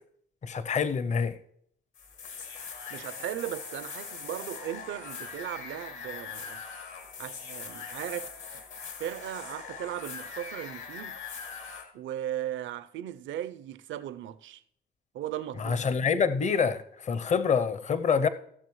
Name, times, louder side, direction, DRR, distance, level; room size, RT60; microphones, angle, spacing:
voice 1, 0.4-1.4 15.6-18.3, left 6 dB, 35° left, 0.6 m, -26 dB
sound 1, 2.0-11.8, left 5 dB, 80° left, 1.7 m, -41 dB
voice 2, 2.9-6.6 7.2-8.6 9.0-11.2 11.9-14.6 15.1-15.8, right 11 dB, 75° right, 0.5 m, -37 dB
17.0 x 6.9 x 3.1 m
cardioid pair, 90°, 20 cm